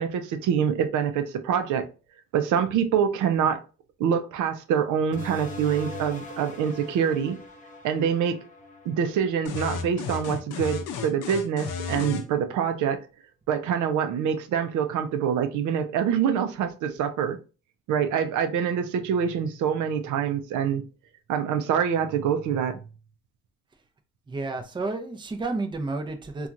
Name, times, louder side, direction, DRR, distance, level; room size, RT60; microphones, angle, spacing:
voice 1, 0.0-1.9 2.3-3.6 4.0-7.4 7.8-8.4 8.9-13.0 13.5-17.4 17.9-20.8 21.3-22.8, right 8 dB, 80° right, 0.5 m, -25 dB
sound 1, 5.1-10.3, left 1 dB, 25° left, 0.7 m, -42 dB
sound 2, 9.5-12.3, left 6 dB, 85° left, 0.5 m, -33 dB
voice 2, 24.3-26.5, right 3 dB, 15° right, 0.5 m, -31 dB
2.8 x 2.3 x 2.4 m
cardioid pair, 90°, 30 cm